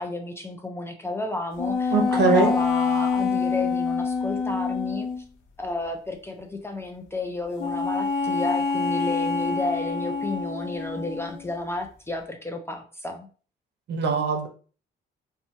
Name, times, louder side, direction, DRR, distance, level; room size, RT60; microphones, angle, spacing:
voice 1, 0.0-5.1 5.6-13.3, left 2 dB, 10° left, 4 dB, 0.5 m, -32 dB
sound 1, 1.6-5.2 7.6-11.5, left 5 dB, 85° left, 0.6 m, -26 dB
voice 2, 1.9-2.5 13.9-14.5, right 4 dB, 60° right, 3 dB, 0.7 m, -21 dB
2.9 x 2.2 x 2.6 m, 0.40 s
cardioid pair, 90°, 20 cm